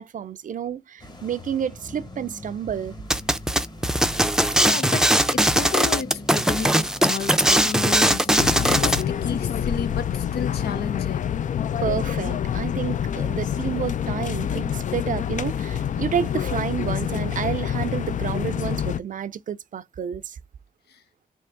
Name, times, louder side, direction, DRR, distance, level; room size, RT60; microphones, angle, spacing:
voice 1, 0.0-3.0 11.8-20.4, right 8 dB, 55° right, 0.5 m, -30 dB
sound 1, 1.0-10.5, left 1 dB, 25° left, 1.3 m, -41 dB
sound 2, 3.1-9.0, right 1 dB, 5° right, 0.5 m, -20 dB
voice 2, 4.6-11.4 20.9-21.0, left 6 dB, 80° left, 0.8 m, -32 dB
sound 3, 8.4-19.0, left 9 dB, 50° left, 0.4 m, -27 dB
3.6 x 2.9 x 4.4 m
cardioid pair, 75°, 16 cm